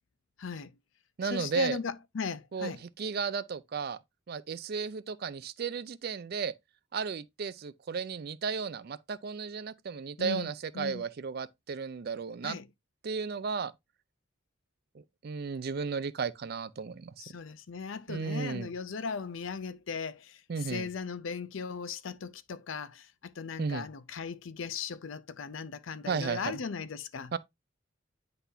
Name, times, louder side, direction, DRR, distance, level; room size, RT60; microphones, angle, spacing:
voice 1, 0.4-0.7 1.2-2.8 10.2-11.0 12.4-12.7 17.2-27.3, left 5 dB, 65° left, 0.5 m, -38 dB
voice 2, 1.2-1.8 2.5-2.7 3.0-4.0 4.3-6.5 6.9-12.6 13.0-13.7 14.9-17.1 18.1-18.7 20.5-20.9 23.6-23.9 26.1-26.6 27.3-27.4, right 5 dB, 45° right, 0.4 m, -34 dB
9.6 x 4.0 x 2.7 m
head